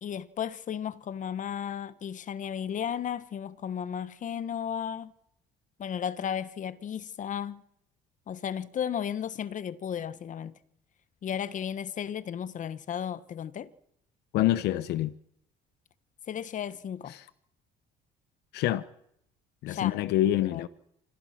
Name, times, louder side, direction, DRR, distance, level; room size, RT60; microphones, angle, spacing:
voice 1, 0.0-5.1 5.8-7.6 8.3-10.5 11.2-13.7 16.3-17.2 19.7-20.0 20.5-20.7, left 8 dB, 50° left, 1.4 m, -34 dB
voice 2, 14.3-15.1 17.1-17.2 18.5-18.8 19.6-20.7, left 14 dB, 80° left, 0.9 m, -26 dB
26.0 x 26.0 x 6.0 m
cardioid pair, 110°, 17 cm